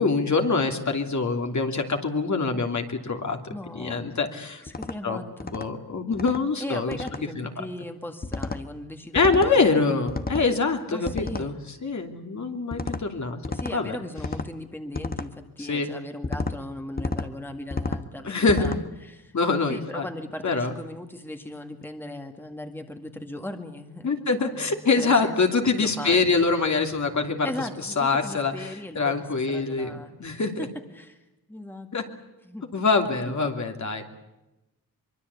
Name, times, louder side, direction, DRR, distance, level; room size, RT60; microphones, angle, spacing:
voice 1, 0.0-4.6 5.0-5.2 5.5-7.0 7.4-7.5 9.1-13.4 13.7-14.0 15.6-15.9 18.2-18.7 19.3-20.1 20.4-20.7 24.0-27.5 28.0-29.9 30.2-30.7 31.9-32.0 32.7-34.0, left 4 dB, 50° left, 4 dB, 2.9 m, -24 dB
voice 2, 3.5-4.1 4.6-5.5 6.6-10.1 10.9-11.6 13.5-19.3 19.7-25.4 25.8-26.3 27.4-29.2 29.5-30.1 30.6-30.7 30.9-32.2 32.4-32.7 33.3-33.5, left 1 dB, 5° left, 5 dB, 2.0 m, -38 dB
sound 1, 4.7-5.0 5.4-5.7 6.1-6.4 6.9-7.2 8.2-8.6 9.2-9.5 10.1-10.5 11.1-11.5 12.7-13.0 13.4-13.8 14.2-14.5 14.9-15.3 16.2-16.6 17.0-17.3 17.7-18.0 18.5-18.8, left 3 dB, 25° left, 1.3 m, -31 dB
24.0 x 24.0 x 8.3 m, 0.98 s
wide cardioid pair, 120°, 37 cm